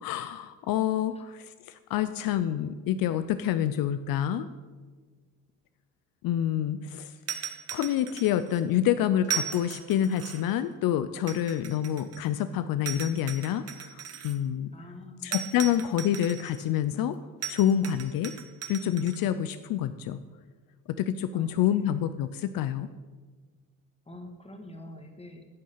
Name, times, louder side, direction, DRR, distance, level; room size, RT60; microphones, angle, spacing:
voice 1, 0.0-4.5 6.2-7.1 7.7-14.7 15.2-17.2 17.5-18.3 18.7-20.2 21.0-22.9, left 10 dB, 75° left, 12 dB, 0.5 m, -27 dB
sound 1, 7.3-8.6 9.2-10.6 11.3-12.4 12.9-14.4 15.3-16.7 17.4-19.2, right 7 dB, 45° right, 0.9 m, -37 dB
voice 2, 14.7-15.8 21.3-21.9 24.0-25.6, left 1 dB, 15° left, 5 dB, 1.6 m, -47 dB
10.5 x 6.3 x 5.6 m, 1.4 s
supercardioid pair, 65°, 35 cm